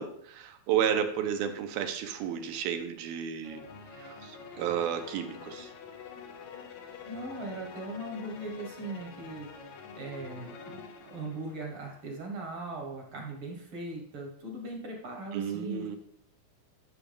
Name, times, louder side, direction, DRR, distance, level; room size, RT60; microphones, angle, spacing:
voice 1, 0.0-3.6 3.9-5.7 15.3-16.0, right 8 dB, 80° right, 6 dB, 2.5 m, -32 dB
sound 1, 3.4-12.0, left 5 dB, 70° left, 1.8 m, -47 dB
voice 2, 7.0-9.5 10.0-15.9, right 2 dB, 55° right, 1 dB, 1.6 m, -39 dB
14.0 x 6.1 x 3.4 m, 0.68 s
omnidirectional pair, 4.4 m